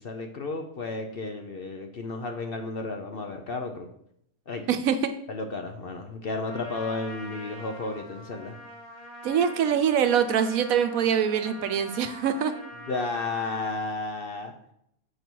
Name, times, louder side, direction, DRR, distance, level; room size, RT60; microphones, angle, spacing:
voice 1, 0.0-3.9 4.5-4.6 5.3-8.6 12.9-14.5, left 3 dB, 50° left, 4 dB, 0.8 m, -33 dB
voice 2, 4.7-5.1 9.2-12.5, right 8 dB, 75° right, 9 dB, 1.1 m, -24 dB
Trumpet, 6.4-13.8, equal, 30° left, 1.6 m, -44 dB
6.7 x 5.4 x 4.5 m, 0.72 s
omnidirectional pair, 1.5 m